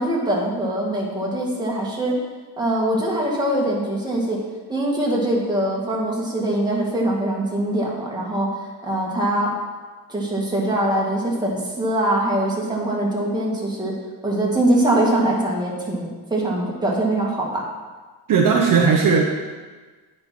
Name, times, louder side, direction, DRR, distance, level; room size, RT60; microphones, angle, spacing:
voice 1, 0.0-2.1 2.6-4.4 4.7-8.5 8.8-9.5 10.1-13.9 14.2-17.6, right 1 dB, 10° right, -4 dB, 2.0 m, -22 dB
voice 2, 18.3-19.2, right 5 dB, 50° right, 0 dB, 1.0 m, -16 dB
9.6 x 4.5 x 6.0 m, 1.4 s
cardioid pair, 120°, 42 cm